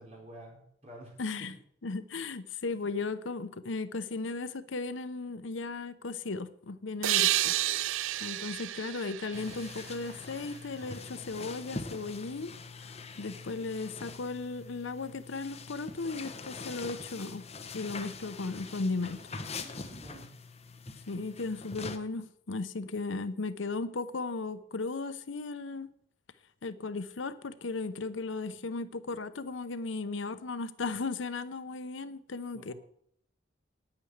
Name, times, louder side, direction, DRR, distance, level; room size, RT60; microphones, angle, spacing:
voice 1, 0.0-1.5 19.6-20.3 32.5-32.7, right 1 dB, 35° right, -1 dB, 4.2 m, -50 dB
voice 2, 1.2-1.6 1.8-7.6 8.2-12.5 12.8-17.4 17.7-19.3 21.1-25.9 26.6-32.7, left 3 dB, 75° left, 13 dB, 0.7 m, -36 dB
sound 1, 7.0-10.5, right 14 dB, 80° right, 0.4 m, -31 dB
sound 2, 9.3-22.0, left 4 dB, 35° left, 0.9 m, -44 dB
9.7 x 8.8 x 8.0 m, 0.69 s
head